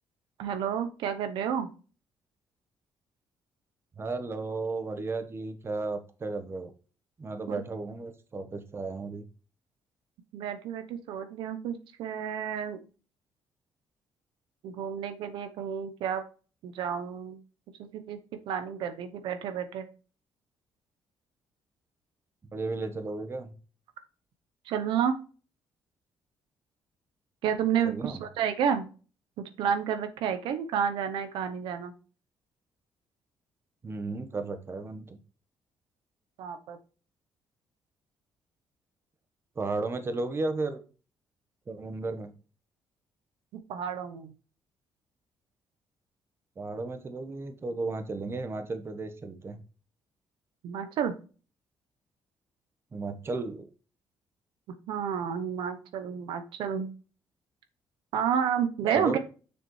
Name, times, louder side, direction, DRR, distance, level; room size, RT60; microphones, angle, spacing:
voice 1, 0.4-1.7 7.5-7.6 10.3-12.8 14.6-16.2 16.6-17.4 17.8-18.2 18.5-19.9 24.7-25.2 27.4-28.9 29.4-31.9 36.4-36.8 43.7-44.3 50.6-51.1 54.7-56.9 58.1-59.2, right 8 dB, 90° right, 9 dB, 0.9 m, -30 dB
voice 2, 4.0-6.7 7.2-9.3 22.5-23.5 27.8-28.2 33.8-35.2 39.5-40.8 41.7-42.3 46.6-49.6 52.9-53.7 58.9-59.2, right 3 dB, 30° right, 8 dB, 1.2 m, -34 dB
6.9 x 6.7 x 3.2 m, 0.36 s
cardioid pair, 110°, 8 cm